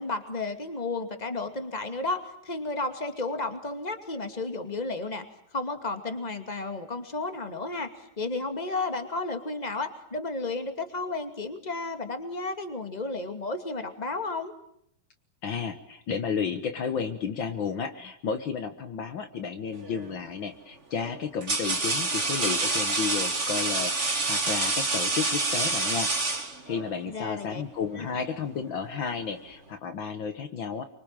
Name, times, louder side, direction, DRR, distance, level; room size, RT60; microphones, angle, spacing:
voice 1, 0.0-5.3 5.5-14.5 27.0-27.6 28.0-28.1, left 3 dB, 20° left, 8 dB, 2.4 m, -33 dB
voice 2, 15.4-26.1 26.7-30.9, left 6 dB, 65° left, 8 dB, 2.0 m, -32 dB
sound 1, 19.8-20.2 21.0-26.9, right 3 dB, 30° right, 3.0 m, -27 dB
25.0 x 24.5 x 9.0 m, 0.69 s
omnidirectional pair, 2.4 m